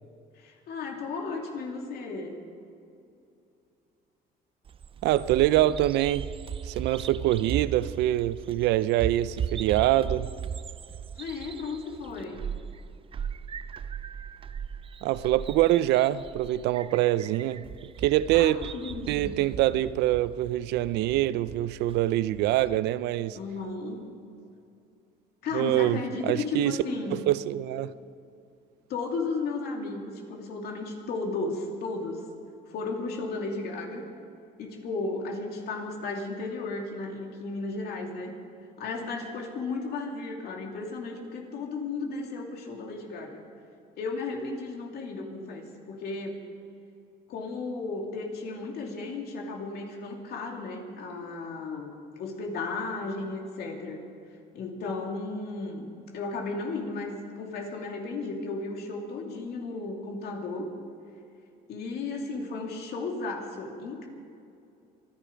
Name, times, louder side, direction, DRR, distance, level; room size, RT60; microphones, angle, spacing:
voice 1, 0.4-2.4 11.1-12.4 18.3-19.4 23.4-24.0 25.4-27.2 28.9-32.2 32.7-34.1 34.6-38.3 38.8-43.4 44.0-46.4 47.3-54.0 54.5-60.7 61.7-64.1, left 3 dB, 70° left, 2.7 m, -34 dB
Bird vocalization bird call bird song, 4.7-22.8, right 8 dB, 30° right, 0.4 m, -38 dB
voice 2, 5.0-6.3 6.6-10.3 15.0-17.6 18.0-18.6 19.1-23.4 25.5-26.7 27.1-27.9, right 14 dB, 85° right, 0.5 m, -25 dB
25.5 x 10.5 x 5.1 m
cardioid pair, 110°, 17 cm